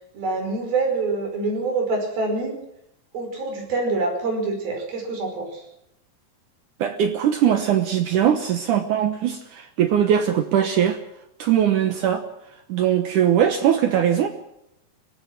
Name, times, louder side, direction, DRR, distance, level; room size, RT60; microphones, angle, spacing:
voice 1, 0.1-2.6 3.1-5.6, right 3 dB, 85° right, 4 dB, 7.1 m, -25 dB
voice 2, 6.8-11.0 11.4-12.2 12.7-14.3, right 9 dB, 65° right, 8 dB, 2.5 m, -20 dB
24.0 x 18.0 x 6.1 m, 0.80 s
omnidirectional pair, 4.1 m